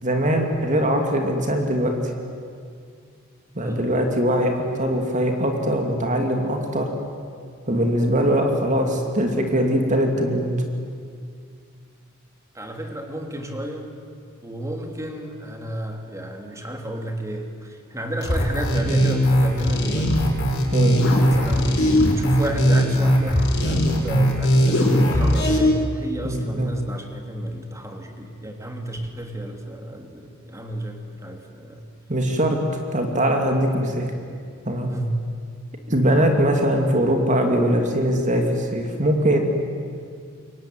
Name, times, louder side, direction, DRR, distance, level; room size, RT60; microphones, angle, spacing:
voice 1, 0.0-1.9 3.5-6.9 7.7-10.5 20.7-21.0 26.2-26.7 32.1-32.6 32.9-34.1 34.7-34.9 35.9-39.4, right 1 dB, 35° right, 3 dB, 2.8 m, -21 dB
voice 2, 3.6-3.9 12.5-13.9 14.4-20.3 21.0-31.8 34.9-35.2, right 1 dB, 15° right, 3 dB, 2.9 m, -32 dB
sound 1, 18.2-25.6, equal, 50° left, 6.8 m, -19 dB
27.5 x 23.0 x 9.3 m, 2.2 s
head